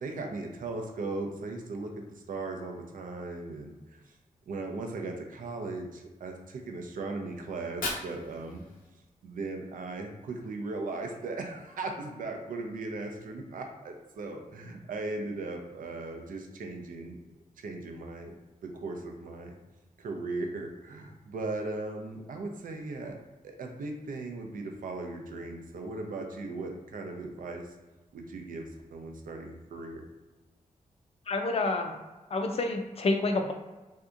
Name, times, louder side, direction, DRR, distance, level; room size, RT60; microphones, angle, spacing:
voice 1, 0.0-4.1 4.5-8.6 9.2-17.2 17.6-18.3 18.6-19.6 20.0-23.2 23.4-27.7 28.1-30.0, right 3 dB, 75° right, 3 dB, 0.5 m, -38 dB
Fire, 7.5-9.5, left 2 dB, 85° left, 0.7 m, -39 dB
voice 2, 31.3-32.0 32.3-33.5, left 2 dB, 45° left, 5 dB, 0.4 m, -28 dB
3.4 x 2.7 x 2.5 m, 1.1 s
wide cardioid pair, 95°, 14 cm